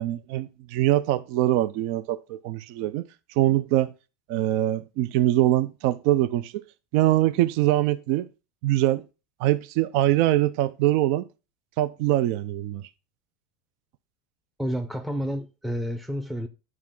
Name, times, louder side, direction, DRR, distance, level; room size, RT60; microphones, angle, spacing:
voice 1, 0.0-3.0 3.4-3.9 4.3-6.6 6.9-8.3 8.6-9.0 9.4-11.2 11.8-12.8, right 14 dB, 60° right, 0.4 m, -23 dB
voice 2, 14.6-16.5, equal, 5° right, 0.6 m, -30 dB
9.6 x 4.7 x 3.7 m
supercardioid pair, 135°, 0 cm